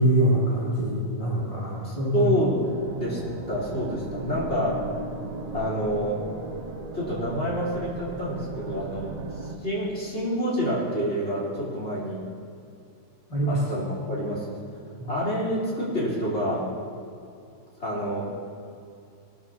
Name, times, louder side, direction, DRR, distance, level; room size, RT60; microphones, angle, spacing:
voice 1, 0.0-2.3 13.3-13.6, right 1 dB, 20° left, -9 dB, 2.4 m, -24 dB
voice 2, 1.8-3.2 3.5-4.8 5.5-6.2 6.9-9.1 9.6-12.2 13.5-14.6 15.1-16.7 17.8-18.3, equal, 35° left, -6 dB, 4.0 m, -28 dB
sound 1, 2.6-9.5, right 2 dB, 60° right, 0.4 m, -37 dB
20.0 x 13.0 x 2.8 m, 2.4 s
omnidirectional pair, 2.0 m